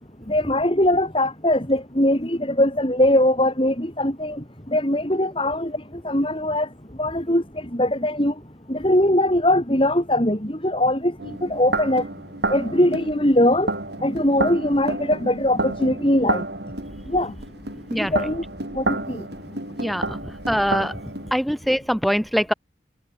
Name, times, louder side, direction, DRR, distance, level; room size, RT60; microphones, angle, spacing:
voice 1, 0.3-4.4 4.7-5.8 6.0-6.7 7.0-7.4 7.7-8.3 8.7-12.0 12.5-13.7 14.0-16.4 17.1-17.3 18.0-18.4 18.7-19.2, left 1 dB, 30° left, 4.3 m, -21 dB
sound 1, 11.2-21.3, right 2 dB, 60° right, 5.7 m, -30 dB
voice 2, 19.8-20.2 20.5-21.0 21.3-22.5, equal, ahead, 2.9 m, -23 dB
head